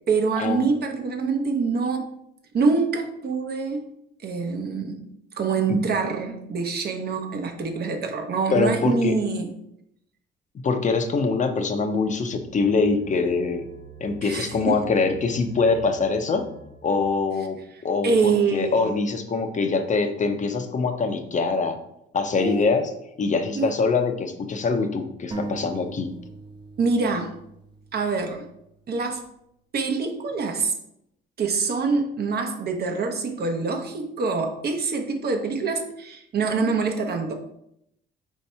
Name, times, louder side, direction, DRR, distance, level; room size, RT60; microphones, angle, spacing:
voice 1, 0.1-2.1 2.5-3.8 4.2-5.0 5.4-9.5 14.2-14.9 18.0-18.9 22.3-22.6 23.5-23.7 26.8-27.3 27.9-28.4 28.9-29.2 29.7-30.7 31.4-37.3, right 4 dB, 55° right, 4 dB, 0.8 m, -25 dB
voice 2, 8.5-9.2 10.6-13.6 14.0-16.4 16.8-17.6 17.8-21.8 22.1-22.9 23.2-26.1, left 4 dB, 40° left, 6 dB, 0.6 m, -24 dB
sound 1, 12.0-17.1, right 5 dB, 75° right, 1.1 m, -45 dB
sound 2, 25.3-28.9, right 3 dB, 25° right, 0.5 m, -39 dB
4.4 x 2.7 x 4.3 m, 0.77 s
cardioid pair, 90°, 20 cm